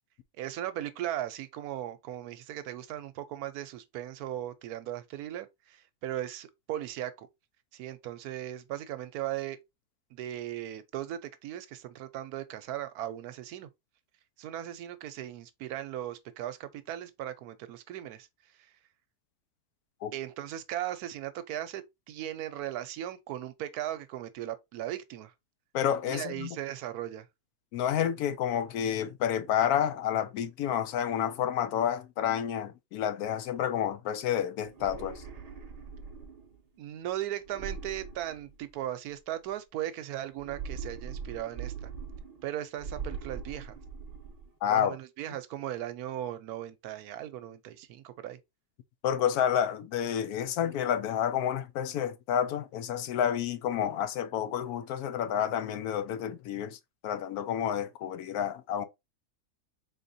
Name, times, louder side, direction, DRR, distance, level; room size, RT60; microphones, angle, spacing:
voice 1, 0.4-7.3 7.7-9.6 10.1-13.7 14.4-18.3 20.1-25.3 26.1-27.3 36.8-41.9 42.4-43.8 44.7-48.4, right 12 dB, 75° right, 1.1 m, -37 dB
voice 2, 25.7-26.6 27.7-35.2 44.6-44.9 49.0-56.8 57.0-58.9, left 9 dB, 75° left, 1.0 m, -29 dB
sound 1, 34.6-36.6 37.4-38.9 40.3-42.5 42.8-44.5, right 6 dB, 50° right, 0.4 m, -41 dB
4.1 x 3.2 x 2.6 m
omnidirectional pair, 1.6 m